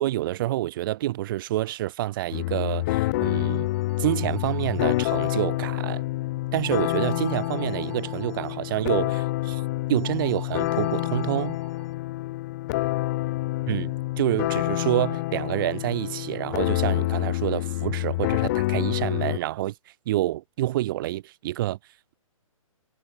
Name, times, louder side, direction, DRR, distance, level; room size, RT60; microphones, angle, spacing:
voice 1, 0.0-3.7 4.0-6.0 6.5-9.6 9.9-11.6 13.7-19.7 20.1-21.8, right 15 dB, 40° right, 1.1 m, -28 dB
sound 1, 2.3-19.4, left 18 dB, 30° left, 0.8 m, -27 dB
sound 2, 3.3-5.3 6.6-8.6 10.0-11.9, right 7 dB, 70° right, 2.8 m, -48 dB
hypercardioid pair, 145°, 18 cm